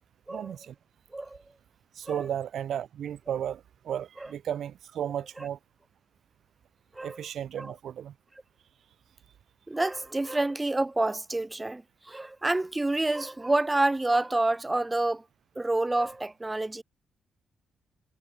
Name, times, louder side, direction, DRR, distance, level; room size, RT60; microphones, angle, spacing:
voice 1, 0.3-0.7 2.0-5.6 7.0-8.1, right 9 dB, 70° right, 0.4 m, -34 dB
voice 2, 9.7-15.2 15.6-16.8, right 2 dB, 15° right, 0.4 m, -28 dB
cardioid pair, 90°, 0 cm